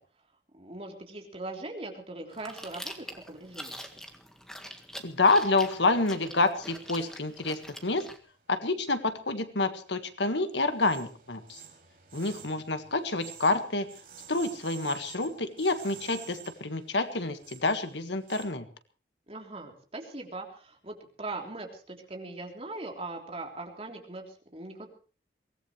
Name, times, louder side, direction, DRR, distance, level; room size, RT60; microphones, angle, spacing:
voice 1, 0.5-3.8 19.3-24.9, right 2 dB, 35° right, 2 dB, 3.5 m, -40 dB
Chewing mastication, 2.3-8.2, equal, 5° left, 1.7 m, -44 dB
voice 2, 5.0-8.1 8.5-11.6 12.1-13.9 14.3-18.6, left 3 dB, 80° left, 9 dB, 1.7 m, -28 dB
sound 1, 6.7-9.1 9.5-18.4, right 9 dB, 50° right, 5.9 m, -51 dB
23.5 x 18.0 x 3.3 m, 0.37 s
head